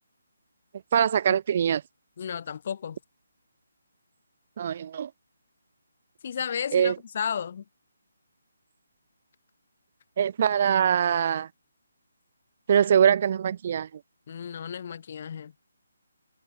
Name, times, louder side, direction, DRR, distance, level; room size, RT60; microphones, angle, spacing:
voice 1, 0.9-1.8 4.6-5.1 6.7-7.0 10.2-11.5 12.7-13.9, right 8 dB, 30° right, 3.7 m, -23 dB
voice 2, 2.2-3.0 6.2-7.6 14.3-15.5, left 7 dB, 35° left, 5.0 m, -33 dB
hypercardioid pair, 175°, 0 cm